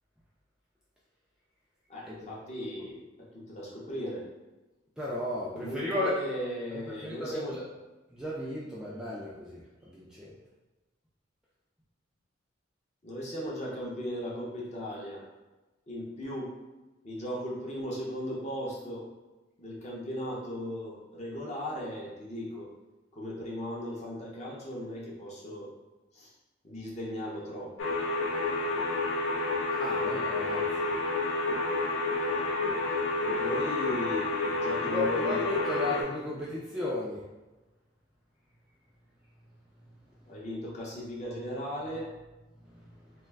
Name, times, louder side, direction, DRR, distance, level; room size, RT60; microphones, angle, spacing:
voice 1, 1.9-3.0 3.3-4.2 5.5-7.5 13.0-15.2 15.9-16.5 17.0-19.1 19.6-22.7 23.2-25.7 26.2-26.3 26.6-27.9 33.2-35.5 40.3-42.1, equal, 35° left, -4 dB, 0.6 m, -37 dB
voice 2, 5.0-6.2 6.9-7.6 8.1-10.3 29.8-30.9 34.8-37.2, left 1 dB, 5° right, -7 dB, 0.3 m, -34 dB
sound 1, 27.8-36.0, left 3 dB, 75° left, 0.5 m, -29 dB
2.3 x 2.3 x 3.2 m, 1.1 s
head